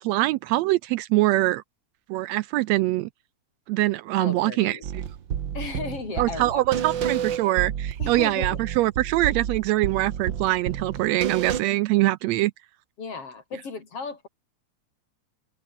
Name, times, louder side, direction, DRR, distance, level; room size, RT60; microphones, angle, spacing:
voice 1, 0.0-1.6 2.1-3.1 3.7-5.0 6.2-12.5, right 17 dB, 80° right, 1.6 m, -23 dB
voice 2, 4.1-4.9 5.5-6.9 8.0-8.6 13.0-14.3, left 4 dB, 50° left, 4.9 m, -35 dB
sound 1, 4.8-11.6, right 9 dB, 50° right, 1.6 m, -30 dB
omnidirectional pair, 3.4 m